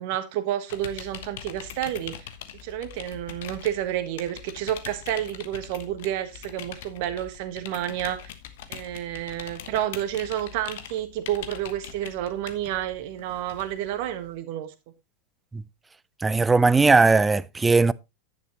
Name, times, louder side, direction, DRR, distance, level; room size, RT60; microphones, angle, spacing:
voice 1, 0.0-2.1 2.6-8.2 8.7-14.7, right 12 dB, 45° right, 1.4 m, -30 dB
sound 1, 0.7-14.4, left 10 dB, 55° left, 1.2 m, -42 dB
voice 2, 16.2-17.9, right 4 dB, 10° right, 0.4 m, -18 dB
10.5 x 9.4 x 3.0 m
figure-of-eight pair, 90°, 0 cm